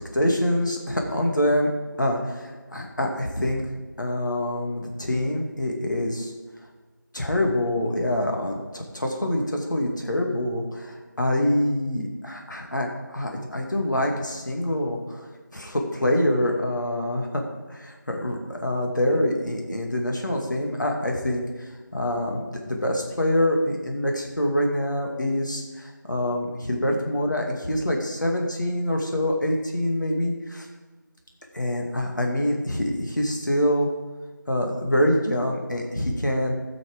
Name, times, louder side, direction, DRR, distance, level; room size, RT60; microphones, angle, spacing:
voice 1, 0.1-1.7 2.0-3.7 4.0-6.3 7.1-15.3 15.5-17.4 17.7-21.4 21.9-30.7 31.5-33.9 34.5-36.5, left 1 dB, 65° left, 1 dB, 2.3 m, -25 dB
13.5 x 6.5 x 5.1 m, 1.3 s
figure-of-eight pair, 175°, 11 cm